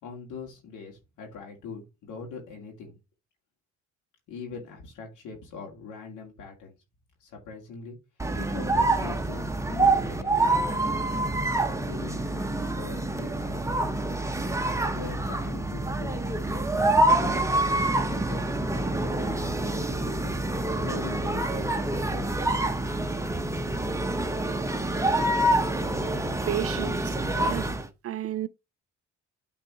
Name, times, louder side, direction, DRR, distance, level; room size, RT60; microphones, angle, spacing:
voice 1, 0.0-3.0 4.3-6.7 7.2-8.0 8.4-11.0 11.7-13.6 14.8-17.6 18.1-20.4 20.8-22.5, left 4 dB, 85° left, 2.5 m, -42 dB
sound 1, 8.2-27.9, right 2 dB, 10° right, 1.0 m, -26 dB
voice 2, 26.5-27.7 28.0-28.5, right 11 dB, 50° right, 0.6 m, -32 dB
8.9 x 4.0 x 4.6 m
cardioid pair, 90°, 30 cm